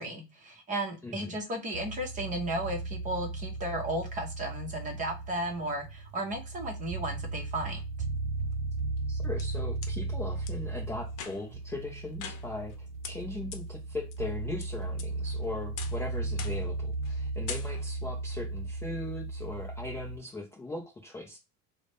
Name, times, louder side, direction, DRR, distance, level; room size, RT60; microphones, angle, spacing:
voice 1, 0.0-7.8, right 1 dB, 20° right, 3 dB, 0.7 m, -34 dB
voice 2, 1.0-1.4 9.1-21.4, left 2 dB, 10° left, -2 dB, 0.3 m, -39 dB
sound 1, 1.7-20.2, right 3 dB, 65° right, 0.5 m, -36 dB
sound 2, 9.0-9.9 10.5-10.6 11.1-11.6 12.2-12.8 13.0-13.1 13.5-13.6 14.1-14.6 15.0-15.4 15.8-16.0 16.4-16.7 17.0-17.2 17.5-18.0, left 7 dB, 55° left, 0.8 m, -42 dB
3.8 x 2.1 x 3.2 m, 0.26 s
cardioid pair, 180°, 37 cm